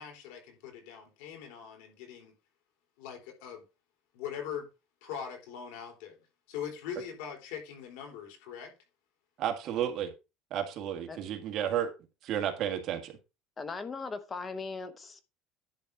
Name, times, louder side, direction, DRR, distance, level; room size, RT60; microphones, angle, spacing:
voice 1, 0.0-2.3 3.0-3.6 4.1-4.7 5.0-6.2 6.5-8.7, left 8 dB, 85° left, 3.9 m, -41 dB
voice 2, 9.4-10.1 10.5-11.9 12.2-13.1, right 10 dB, 40° right, 1.8 m, -32 dB
voice 3, 13.6-15.3, left 4 dB, 15° left, 0.8 m, -39 dB
10.5 x 4.2 x 5.4 m
cardioid pair, 170°, 0 cm